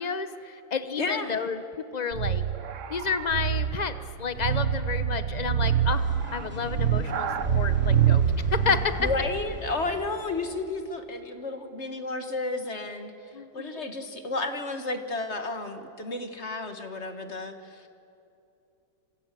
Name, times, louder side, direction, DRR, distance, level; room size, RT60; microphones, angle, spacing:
voice 1, 0.0-1.6 1.9-2.4 2.9-3.9 4.2-7.3 7.5-8.2 8.5-8.9 13.3-13.9, left 5 dB, 50° left, 11 dB, 0.4 m, -30 dB
voice 2, 1.0-1.4 9.0-13.1 13.5-17.9, left 3 dB, 35° left, 7 dB, 1.8 m, -32 dB
sound 1, 2.1-9.0, right 9 dB, 50° right, 0.9 m, -26 dB
sound 2, 5.8-10.6, right 1 dB, 5° right, 3.5 m, -38 dB
28.5 x 26.0 x 7.6 m, 2.7 s
omnidirectional pair, 2.4 m